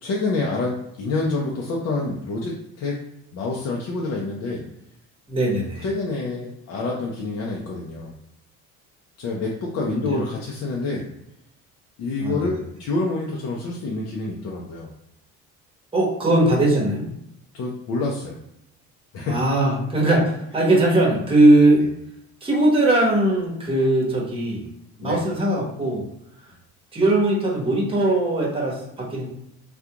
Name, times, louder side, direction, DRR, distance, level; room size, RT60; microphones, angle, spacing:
voice 1, 0.0-3.0 3.3-4.6 5.8-8.1 9.2-11.1 12.0-14.9 17.5-18.4 19.1-19.4 25.0-25.2, left 3 dB, 55° left, -2 dB, 0.6 m, -27 dB
voice 2, 5.3-5.8 9.9-10.2 12.2-12.5 15.9-17.0 19.3-21.8 22.4-24.6 25.0-26.0 26.9-29.3, right 1 dB, 15° right, -3 dB, 1.0 m, -20 dB
3.6 x 2.4 x 2.9 m, 0.77 s
cardioid pair, 145°, 31 cm